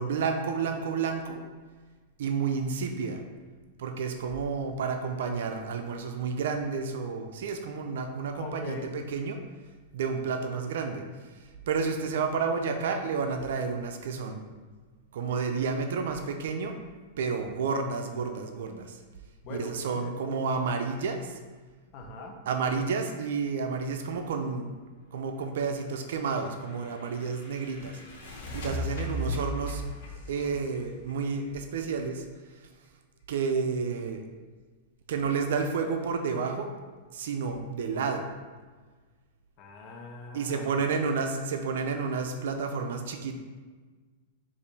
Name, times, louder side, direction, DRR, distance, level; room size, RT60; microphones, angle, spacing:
voice 1, 0.0-1.4 2.2-3.2 3.8-9.4 9.9-11.0 11.7-14.4 15.1-16.8 17.2-19.0 19.5-21.4 22.5-24.7 25.1-29.8 30.3-32.2 33.3-34.2 35.1-36.7 37.1-38.3 40.3-43.3, right 5 dB, 75° right, 5 dB, 0.4 m, -30 dB
voice 2, 8.4-9.0 19.4-20.4 21.9-22.4 28.5-28.7 39.6-41.0, left 2 dB, 40° left, 2 dB, 0.7 m, -41 dB
sound 1, 26.1-31.8, equal, 80° left, 0.9 m, -38 dB
5.2 x 2.5 x 3.3 m, 1.4 s
supercardioid pair, 140°, 0 cm